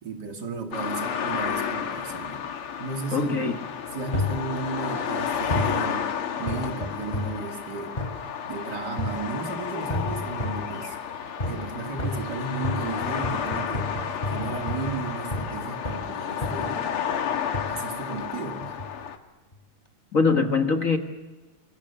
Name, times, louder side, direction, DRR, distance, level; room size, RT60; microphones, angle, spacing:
voice 1, 0.0-2.4 2.8-3.6 3.9-7.9 8.4-11.0 11.5-16.9 17.7-18.7, right 4 dB, 50° right, 4 dB, 3.0 m, -34 dB
sound 1, 0.7-19.2, left 8 dB, 85° left, 2.5 m, -32 dB
voice 2, 3.1-3.6 20.1-21.0, left 4 dB, 40° left, 5 dB, 1.8 m, -22 dB
sound 2, 4.1-4.4 5.5-5.8 6.5-7.4 8.0-8.2 9.0-9.3 9.9-10.7 11.4-11.7 12.0-15.6 15.8-16.1 16.4-16.8 17.5-17.8 18.6-18.9 19.5-19.6, left 2 dB, 20° left, 3.9 m, -31 dB
27.5 x 23.0 x 7.0 m, 1.3 s
omnidirectional pair, 2.4 m